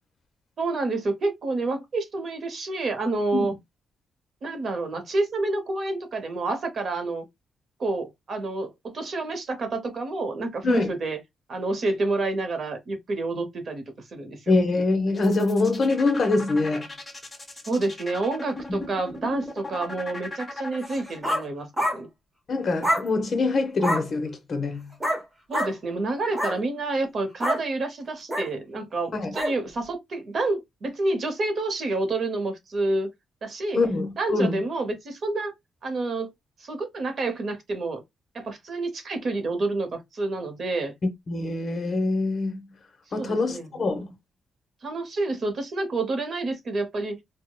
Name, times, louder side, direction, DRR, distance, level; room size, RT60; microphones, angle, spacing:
voice 1, 0.6-3.5 4.4-7.3 7.8-11.2 11.5-13.8 14.1-14.5 17.7-22.1 25.5-33.1 33.4-33.8 34.2-35.5 35.8-36.3 36.6-38.0 38.3-40.9 43.2-44.1 44.8-47.2, right 2 dB, 40° right, 0.8 m, -28 dB
voice 2, 14.5-16.9 18.7-18.8 22.5-24.9 29.1-29.3 33.7-34.6 41.0-42.6 43.1-44.1, left 3 dB, 40° left, 0.8 m, -24 dB
sound 1, 15.1-21.3, left 2 dB, 10° left, 1.0 m, -38 dB
sound 2, 20.9-21.5 21.8-22.0 22.8-23.1 23.8-24.1 25.0-25.2 25.5-25.7 26.2-26.6 27.4-27.6 28.3-28.5 29.3-29.5, equal, 15° right, 0.9 m, -26 dB
4.6 x 2.1 x 2.2 m
cardioid pair, 165°, 0 cm